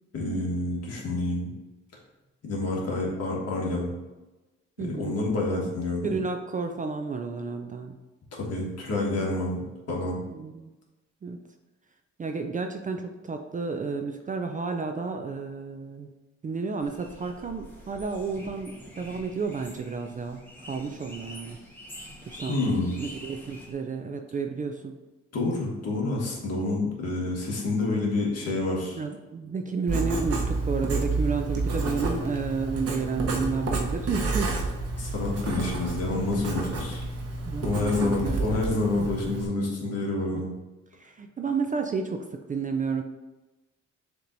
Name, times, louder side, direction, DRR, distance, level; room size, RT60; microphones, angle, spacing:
voice 1, 0.1-1.5 2.4-3.9 4.8-6.1 8.3-9.6 9.9-10.2 22.5-22.9 25.3-29.0 35.0-37.0 37.6-40.5, left 2 dB, 55° left, -3 dB, 1.5 m, -28 dB
voice 2, 4.8-5.2 6.0-8.0 10.3-10.7 11.2-11.4 12.2-16.1 16.4-21.6 22.2-22.5 23.0-24.9 28.9-34.5 35.0-35.1 37.5-39.1 40.3-40.4 41.0-43.0, right 5 dB, 25° right, 5 dB, 0.4 m, -31 dB
sound 1, 16.8-23.7, left 1 dB, 5° left, 1.1 m, -46 dB
Writing, 29.9-39.5, right 2 dB, 55° right, 0.9 m, -30 dB
6.8 x 3.0 x 2.6 m, 1.1 s
cardioid pair, 90°, 30 cm